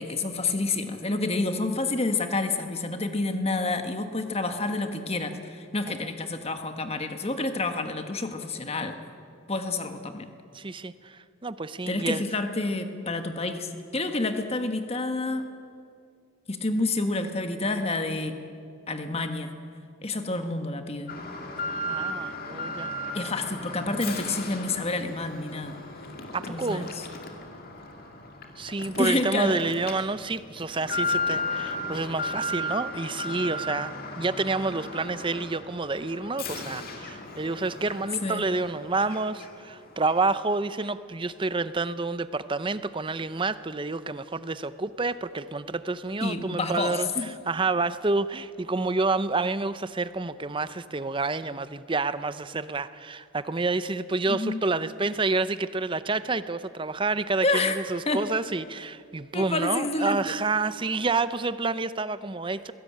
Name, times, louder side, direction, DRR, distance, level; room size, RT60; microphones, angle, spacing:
voice 1, 0.0-9.0 9.5-10.3 11.9-15.5 16.5-18.3 18.9-19.5 20.0-21.1 23.1-25.8 26.5-26.9 29.0-29.6 38.2-38.4 46.2-47.3 54.3-54.6 57.4-57.7 58.1-58.2 59.3-60.3, left 2 dB, 30° left, 7 dB, 1.5 m, -29 dB
voice 2, 10.5-12.2 21.6-22.9 26.3-26.9 28.6-47.1 47.5-62.7, right 3 dB, 25° right, 14 dB, 0.6 m, -29 dB
Alarm, 21.1-39.8 40.1-40.2 40.8-40.9, left 2 dB, 45° left, 2.3 m, -35 dB
22.5 x 16.5 x 8.6 m, 2.3 s
head